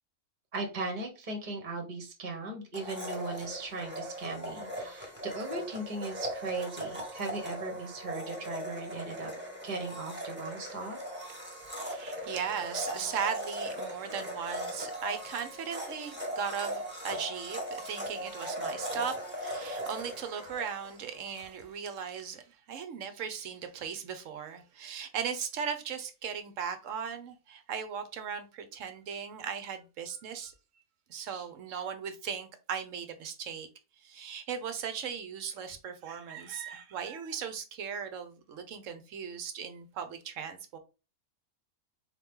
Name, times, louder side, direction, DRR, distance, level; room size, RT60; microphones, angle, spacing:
voice 1, 0.5-9.3 9.6-11.0 31.3-31.4, right 3 dB, 35° right, 1.0 m, -38 dB
Domestic sounds home sounds, 2.7-21.5, equal, 10° right, 1.1 m, -39 dB
voice 2, 11.7-30.5 31.1-33.7 34.0-40.8, right 7 dB, 65° right, 0.9 m, -38 dB
4.2 x 3.0 x 3.5 m
omnidirectional pair, 1.6 m